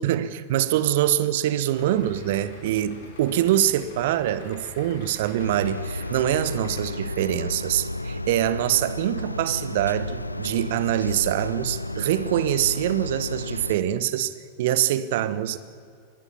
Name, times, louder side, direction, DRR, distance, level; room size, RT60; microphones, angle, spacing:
voice 1, 0.0-15.6, right 12 dB, 55° right, 1.1 m, -24 dB
Idling, 1.7-6.8, left 4 dB, 60° left, 5.5 m, -44 dB
sound 1, 5.4-13.8, left 1 dB, 85° left, 0.6 m, -32 dB
24.5 x 20.0 x 7.2 m
figure-of-eight pair, 90°, 0 cm